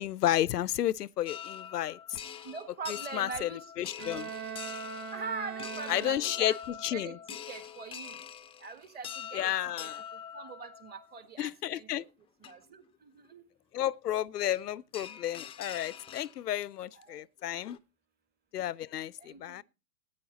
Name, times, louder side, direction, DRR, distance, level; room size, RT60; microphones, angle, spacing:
voice 1, 0.0-2.2 2.9-4.3 5.9-7.2 9.3-10.0 11.4-12.0 13.7-17.8 18.5-19.6, left 12 dB, 90° left, 0.6 m, -32 dB
sound 1, 1.3-11.3 12.0-12.1 12.4-12.5 14.5-14.6 14.9-16.6 17.0-17.1 17.5-17.8, left 9 dB, 10° left, 0.5 m, -44 dB
voice 2, 2.4-3.6 5.1-6.5 6.9-7.1 7.5-8.2 8.6-9.5 9.8-9.9 10.3-12.0 12.5-13.4 17.0-17.2 19.2-19.6, right 5 dB, 20° right, 1.8 m, -42 dB
Bowed string instrument, 4.0-6.7, right 7 dB, 80° right, 3.3 m, -41 dB
14.0 x 9.6 x 4.0 m
hypercardioid pair, 125°, 46 cm